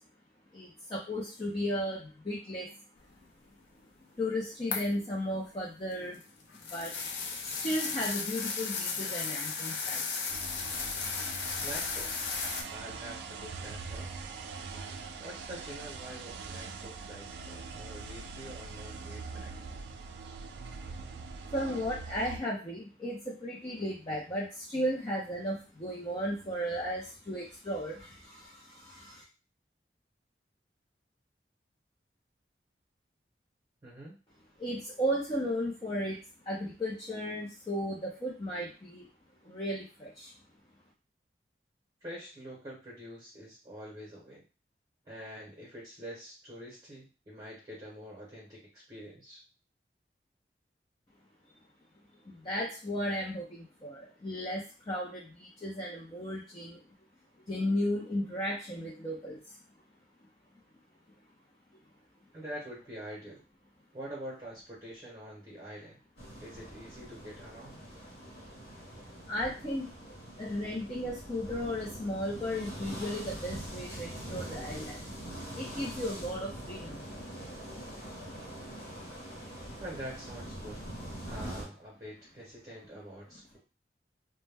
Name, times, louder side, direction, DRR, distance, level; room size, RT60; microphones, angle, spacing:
voice 1, 0.5-2.8 4.2-6.2 6.7-6.9 7.4-10.3 21.5-29.2 34.6-36.2 36.4-39.1 39.4-40.3 52.2-56.8 57.5-59.6 69.3-69.9 70.4-75.0 75.5-77.0, equal, 25° left, -5 dB, 0.5 m, -35 dB
sound 1, 4.7-5.0 5.9-12.6, left 5 dB, 90° left, 0.5 m, -35 dB
Lonely cars, 10.3-22.4, right 4 dB, 75° right, 0.3 m, -43 dB
voice 2, 11.6-12.2 12.7-14.1 15.2-19.7 33.8-34.2 42.0-44.4 45.0-49.4 62.3-63.4 63.9-66.0 66.4-67.8 79.8-80.8 81.3-83.6, equal, 25° right, -4 dB, 0.8 m, -45 dB
sound 2, 66.2-81.6, right 1 dB, 70° left, 1.0 m, -43 dB
2.1 x 2.1 x 3.3 m, 0.33 s
head